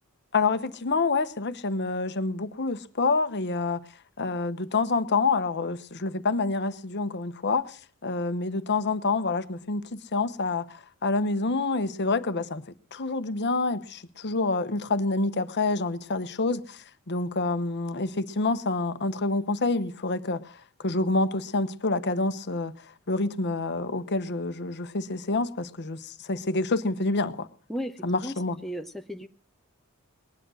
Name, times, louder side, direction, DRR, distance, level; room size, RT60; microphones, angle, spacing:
voice 1, 0.3-3.8 4.2-12.6 12.9-27.5 28.0-28.5, left 3 dB, 50° left, 1.0 m, -27 dB
voice 2, 27.7-29.3, equal, ahead, 0.8 m, -36 dB
20.0 x 11.0 x 6.3 m
head